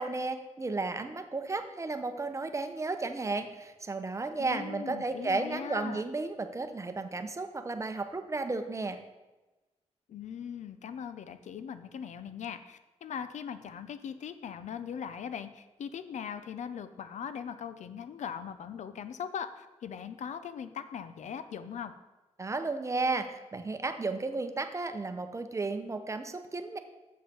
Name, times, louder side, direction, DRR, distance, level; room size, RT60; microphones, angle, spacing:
voice 1, 0.0-9.0 22.4-26.8, right 3 dB, 25° right, 8 dB, 0.7 m, -33 dB
voice 2, 4.4-6.0 10.1-21.9, left 7 dB, 80° left, 11 dB, 0.6 m, -40 dB
7.4 x 7.3 x 4.3 m, 1.1 s
wide cardioid pair, 110°, 12 cm